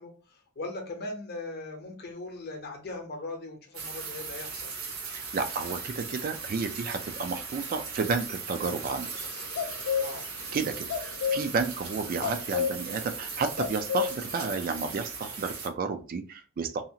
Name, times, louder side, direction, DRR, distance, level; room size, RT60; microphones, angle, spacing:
voice 1, 0.0-4.7 9.9-10.3, left 2 dB, 50° left, 3 dB, 0.7 m, -39 dB
sound 1, 3.7-15.7, right 5 dB, 75° right, 0.8 m, -38 dB
voice 2, 5.1-9.1 10.5-16.8, right 4 dB, 40° right, 8 dB, 0.3 m, -31 dB
sound 2, 8.9-10.6 10.8-14.8, left 7 dB, 85° left, 0.3 m, -30 dB
2.7 x 2.4 x 2.7 m, 0.36 s
head